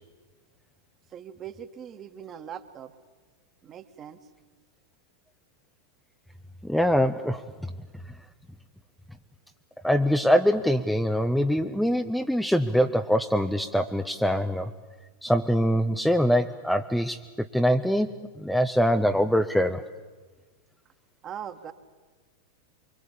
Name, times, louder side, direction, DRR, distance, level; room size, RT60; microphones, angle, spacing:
voice 1, 1.1-2.9 3.6-4.2 21.2-21.7, right 9 dB, 30° right, 9 dB, 1.7 m, -40 dB
voice 2, 6.6-7.7 9.8-14.7 15.2-19.8, equal, ahead, 7 dB, 0.8 m, -24 dB
25.0 x 24.5 x 8.5 m, 1.3 s
figure-of-eight pair, 90°, 0 cm